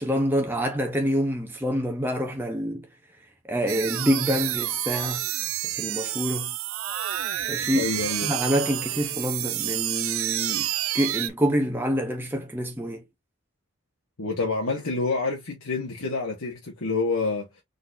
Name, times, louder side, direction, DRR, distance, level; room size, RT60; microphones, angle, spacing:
voice 1, 0.0-2.9 3.5-5.3 5.6-6.5 7.5-7.9 8.2-10.7 10.9-13.0, equal, 10° right, 0.8 m, -26 dB
sound 1, 3.7-11.3, right 13 dB, 75° right, 0.5 m, -29 dB
voice 2, 7.7-8.3 14.2-17.5, left 3 dB, 80° left, 1.4 m, -27 dB
4.1 x 3.8 x 2.6 m
head